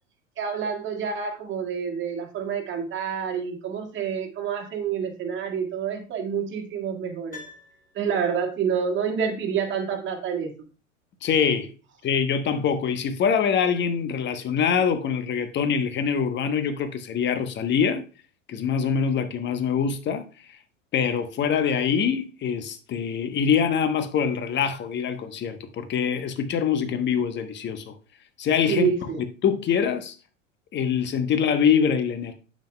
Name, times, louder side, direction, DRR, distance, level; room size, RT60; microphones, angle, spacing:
voice 1, 0.4-7.4 7.9-10.5 28.7-29.2, right 7 dB, 30° right, 1.8 m, -28 dB
Piano, 7.3-8.6 8.8-8.9, left 4 dB, 90° left, 4.4 m, -46 dB
voice 2, 11.2-11.7 12.0-18.0 18.5-20.2 20.9-27.9 28.4-30.1 30.7-32.3, left 7 dB, 25° left, 1.0 m, -24 dB
9.0 x 7.4 x 2.2 m
figure-of-eight pair, 90°, 40 cm